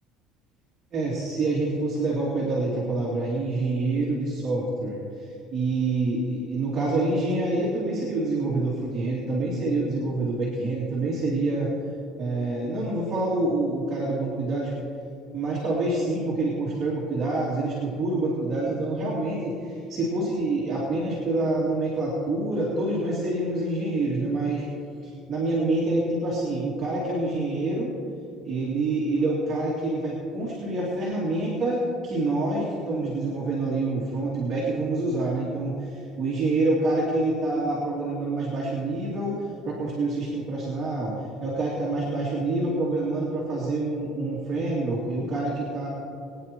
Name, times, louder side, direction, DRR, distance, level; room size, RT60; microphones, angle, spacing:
voice 1, 0.9-11.7 12.2-14.7 15.3-24.6 25.0-27.9 28.4-45.9, right 2 dB, 30° right, -6 dB, 2.7 m, -27 dB
23.0 x 9.8 x 3.1 m, 2.7 s
cardioid pair, 170°, 0 cm